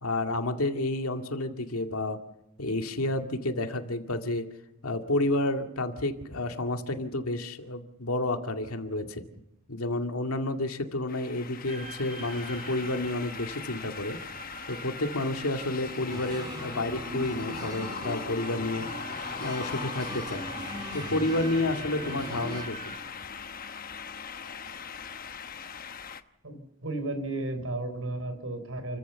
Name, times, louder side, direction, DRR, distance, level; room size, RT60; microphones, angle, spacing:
voice 1, 0.0-2.2 2.6-4.5 4.8-9.3 9.7-14.2 14.7-18.9 19.4-20.4 20.9-22.9, left 2 dB, 90° left, 5 dB, 2.2 m, -30 dB
sound 1, 11.1-26.2, left 6 dB, 40° left, 1.0 m, -40 dB
sound 2, 11.6-23.0, right 7 dB, 40° right, 2.6 m, -47 dB
sound 3, 16.1-22.7, right 1 dB, 20° right, 2.4 m, -40 dB
voice 2, 26.4-29.0, right 2 dB, 70° right, 9 dB, 3.8 m, -34 dB
29.5 x 14.5 x 7.0 m, 0.87 s
head